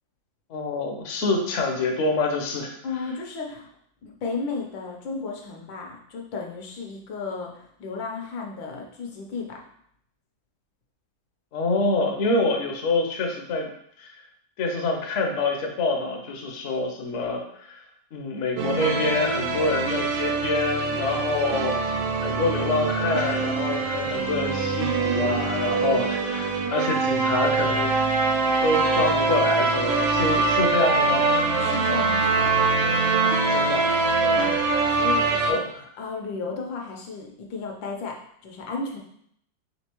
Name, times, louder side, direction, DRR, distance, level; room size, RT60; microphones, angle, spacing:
voice 1, 0.5-2.8 11.5-13.7 14.0-14.1 14.6-17.8 18.1-27.9 28.6-31.4 33.5-34.3 35.5-35.8, left 3 dB, 60° left, 2 dB, 0.8 m, -26 dB
voice 2, 2.8-3.7 4.0-9.6 31.6-32.6 34.3-35.6 36.0-39.0, left 4 dB, 80° left, 1 dB, 1.5 m, -34 dB
sound 1, 18.6-35.5, right 3 dB, 85° right, 1.4 m, -23 dB
4.3 x 3.6 x 3.0 m, 0.68 s
omnidirectional pair, 2.1 m